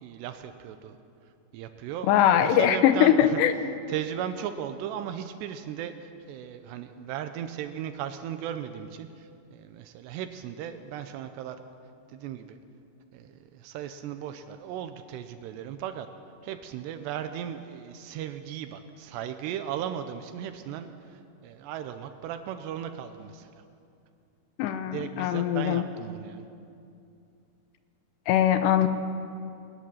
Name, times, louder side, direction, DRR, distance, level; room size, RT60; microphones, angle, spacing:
voice 1, 0.0-1.0 1.5-3.4 3.9-11.6 12.1-12.6 13.1-16.1 16.4-23.6 24.9-26.5, right 9 dB, 85° right, 8 dB, 2.9 m, -36 dB
voice 2, 2.1-3.5 24.6-25.8 28.3-28.9, left 10 dB, 80° left, 10 dB, 2.9 m, -21 dB
20.0 x 13.5 x 10.0 m, 2.6 s
omnidirectional pair, 5.0 m